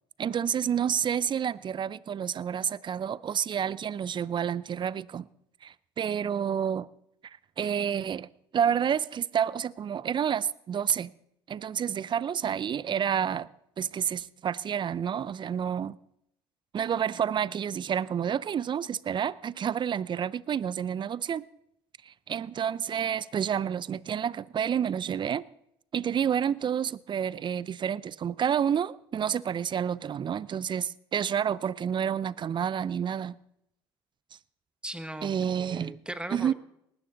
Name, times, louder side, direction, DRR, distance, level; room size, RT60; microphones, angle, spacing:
voice 1, 0.2-5.3 5.6-6.9 7.6-11.1 11.5-13.5 13.8-16.0 16.7-21.4 22.1-25.4 25.9-33.4 35.2-35.9 36.3-36.5, right 8 dB, 35° right, 0.5 m, -29 dB
voice 2, 34.8-36.5, right 1 dB, 5° right, 1.3 m, -39 dB
19.0 x 13.0 x 3.9 m
hypercardioid pair, 70°, 13 cm